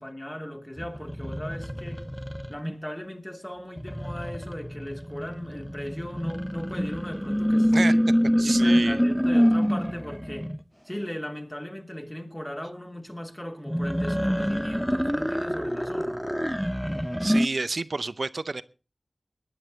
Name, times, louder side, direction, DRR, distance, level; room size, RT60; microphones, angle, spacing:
voice 1, 0.0-2.0 2.5-8.0 8.2-10.5 10.8-16.2, equal, 20° left, 2.8 m, -38 dB
sound 1, 0.8-2.7 3.8-10.6 13.7-17.5, equal, ahead, 0.7 m, -26 dB
voice 2, 8.4-9.0 17.2-18.6, right 3 dB, 75° right, 0.7 m, -29 dB
22.0 x 10.0 x 4.0 m
wide cardioid pair, 45°, 0 cm